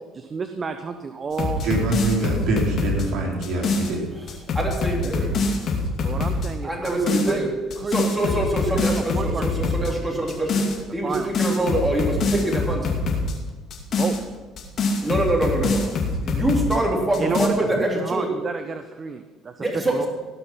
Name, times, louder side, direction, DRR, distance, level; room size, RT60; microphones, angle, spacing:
voice 1, 0.1-1.9 6.0-7.4 7.8-10.0 11.0-11.3 13.9-14.2 17.2-20.1, right 5 dB, 35° right, 8 dB, 0.8 m, -31 dB
sound 1, 1.3-3.9 4.3-6.5 6.8-7.3 7.7-9.9 10.3-10.8 11.1-13.3 13.7-16.8 17.1-17.5, left 3 dB, 55° left, 2.6 m, -24 dB
voice 2, 1.6-4.1, right 2 dB, 65° right, -1 dB, 3.3 m, -25 dB
voice 3, 4.5-5.3 6.6-7.5 7.9-10.6 10.9-13.0 15.0-15.8 16.2-18.3 19.6-20.1, right 1 dB, 10° right, -1 dB, 3.1 m, -24 dB
17.5 x 5.9 x 5.7 m, 1.3 s
supercardioid pair, 80°, 0 cm